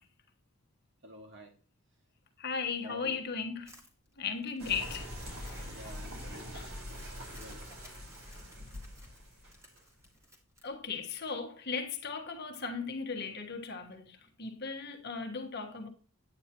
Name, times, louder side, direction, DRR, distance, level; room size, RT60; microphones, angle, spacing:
voice 1, 1.0-1.5 2.8-3.2 4.6-4.8 5.6-6.6 7.3-7.6, left 1 dB, 55° right, 2.3 m, -49 dB
voice 2, 2.4-3.7 4.2-5.1 5.4-5.9 6.3-6.7 10.6-15.9, left 5 dB, 45° left, 1.4 m, -37 dB
Crumpling crinkling, 3.7-11.3, equal, 15° right, 2.0 m, -59 dB
sound 1, 4.6-10.1, equal, 70° right, 4.6 m, -44 dB
9.4 x 9.0 x 2.9 m
head